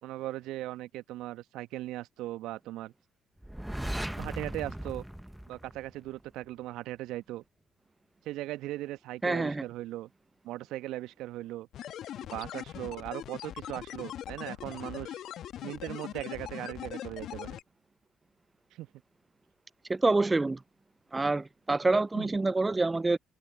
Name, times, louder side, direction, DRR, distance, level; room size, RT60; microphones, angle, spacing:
voice 1, 0.0-2.9 4.2-5.0 5.5-7.4 8.2-10.1 10.4-11.7 12.3-15.2 15.6-17.6 18.7-18.9 22.1-22.3, right 16 dB, 65° right, 1.6 m, -38 dB
sound 1, 3.4-6.3, right 1 dB, 5° right, 1.4 m, -37 dB
voice 2, 9.2-9.6 19.9-20.6 21.1-23.2, right 3 dB, 20° right, 0.4 m, -26 dB
sound 2, 11.7-17.6, left 11 dB, 60° left, 2.9 m, -41 dB
figure-of-eight pair, 45°, 0 cm